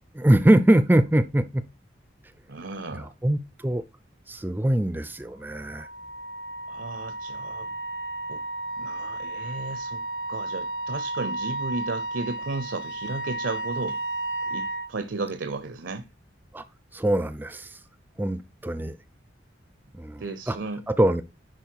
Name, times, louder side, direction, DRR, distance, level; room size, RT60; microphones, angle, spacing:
voice 1, 0.1-1.6 3.0-3.8 4.3-5.9 16.5-16.6 16.9-17.8 18.2-19.0 19.9-20.6 20.9-21.2, right 1 dB, 10° right, 0.4 m, -23 dB
voice 2, 2.5-3.1 6.7-7.7 8.3-8.4 8.8-10.0 10.3-14.0 14.4-16.1 20.2-20.8, right 3 dB, 75° right, 0.7 m, -34 dB
Wind instrument woodwind instrument, 5.4-14.9, right 2 dB, 55° left, 0.6 m, -33 dB
10.5 x 4.3 x 4.6 m
head